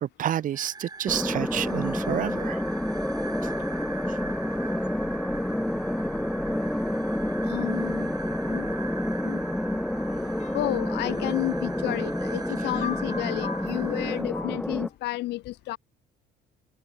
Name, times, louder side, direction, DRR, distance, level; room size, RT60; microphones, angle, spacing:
voice 1, 0.0-2.6, right 11 dB, 50° right, 1.0 m, -29 dB
sound 1, 0.5-14.2, right 4 dB, 25° right, 4.7 m, -41 dB
sound 2, 1.1-14.9, left 1 dB, 5° left, 0.6 m, -29 dB
voice 2, 7.4-8.1 8.5-8.7 9.2-9.4 10.5-15.8, left 18 dB, 80° left, 2.5 m, -31 dB
sound 3, 10.0-15.0, left 8 dB, 45° left, 5.5 m, -41 dB
cardioid pair, 110°, 17 cm